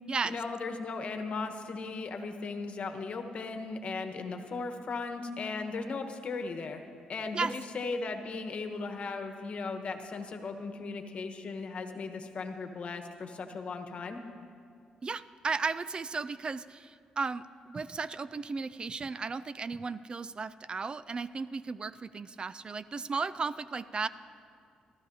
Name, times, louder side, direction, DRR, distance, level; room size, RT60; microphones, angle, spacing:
voice 1, 0.2-6.8 7.1-14.2, left 4 dB, 55° left, 6 dB, 1.2 m, -37 dB
voice 2, 15.0-24.1, right 4 dB, 35° right, 16 dB, 0.3 m, -35 dB
22.0 x 14.0 x 2.8 m, 2.3 s
cardioid pair, 70°, 3 cm